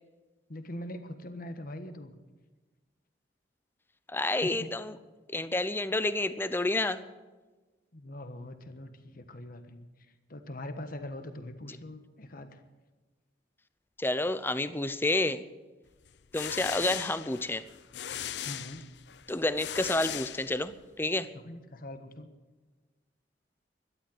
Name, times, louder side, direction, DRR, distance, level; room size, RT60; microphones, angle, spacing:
voice 1, 0.5-2.1 4.4-4.7 7.9-9.9 10.3-12.6 18.4-18.8 21.3-22.3, left 1 dB, 55° left, 8 dB, 1.3 m, -42 dB
voice 2, 4.1-5.0 5.3-7.0 14.0-15.4 16.3-17.6 19.3-21.3, left 2 dB, 15° left, 13 dB, 0.7 m, -29 dB
sound 1, 16.1-20.9, left 10 dB, 70° left, 0.6 m, -39 dB
12.5 x 12.0 x 7.9 m, 1.3 s
head